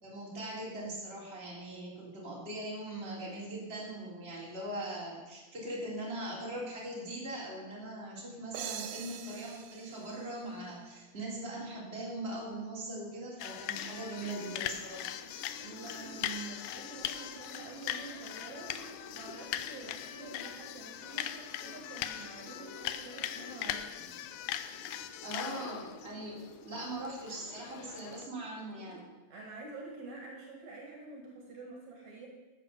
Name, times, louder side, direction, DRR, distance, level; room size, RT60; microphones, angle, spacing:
voice 1, 0.0-15.1 25.2-29.0, right 1 dB, 20° right, -4 dB, 3.6 m, -41 dB
sound 1, 8.5-11.2, right 10 dB, 90° right, 2.4 m, -44 dB
sound 2, 13.4-28.3, left 11 dB, 80° left, 1.9 m, -40 dB
sound 3, 13.7-29.0, left 1 dB, 50° left, 0.8 m, -53 dB
voice 2, 15.6-24.1 29.3-32.3, right 3 dB, 65° right, 0 dB, 3.2 m, -47 dB
14.0 x 7.7 x 6.8 m, 1.2 s
omnidirectional pair, 3.5 m